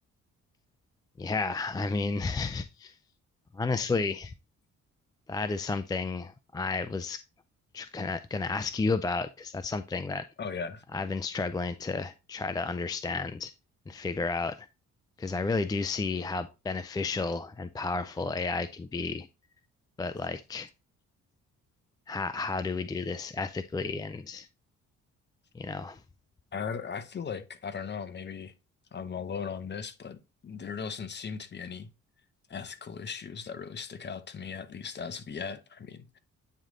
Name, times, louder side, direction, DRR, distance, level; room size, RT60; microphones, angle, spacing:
voice 1, 1.2-2.9 3.5-4.3 5.3-7.2 7.7-10.2 10.9-13.5 13.9-14.7 15.2-19.3 20.0-20.7 22.1-24.5 25.5-26.0, left 3 dB, 15° left, 0.3 m, -32 dB
voice 2, 10.4-10.8 26.5-28.5 28.9-31.9 32.5-36.2, left 6 dB, 35° left, 0.8 m, -38 dB
8.8 x 3.2 x 3.7 m
cardioid pair, 90°, 30 cm